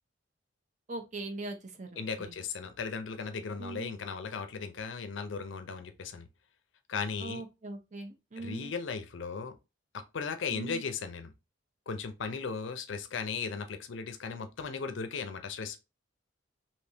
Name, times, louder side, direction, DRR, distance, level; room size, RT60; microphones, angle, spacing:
voice 1, 0.9-2.3 3.6-4.0 7.2-8.7 10.5-10.8, right 3 dB, 40° right, 0.6 m, -41 dB
voice 2, 2.0-6.3 6.9-7.4 8.4-9.6 9.9-11.3 11.9-15.8, left 5 dB, 75° left, 0.5 m, -37 dB
3.4 x 2.8 x 2.7 m
head